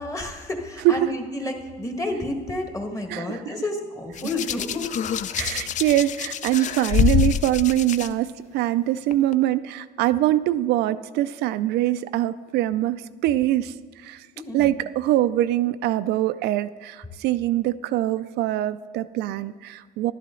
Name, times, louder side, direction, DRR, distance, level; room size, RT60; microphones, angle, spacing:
voice 1, 0.0-4.9 6.6-6.7 14.3-14.7, left 2 dB, 20° left, 3 dB, 1.6 m, -30 dB
voice 2, 3.1-3.6 5.4-14.3 14.5-20.1, right 14 dB, 80° right, 12 dB, 0.4 m, -23 dB
Hands, 4.2-8.1 9.1-9.3, left 9 dB, 45° left, 0.4 m, -25 dB
11.5 x 11.0 x 3.8 m, 1.5 s
cardioid pair, 110°, 17 cm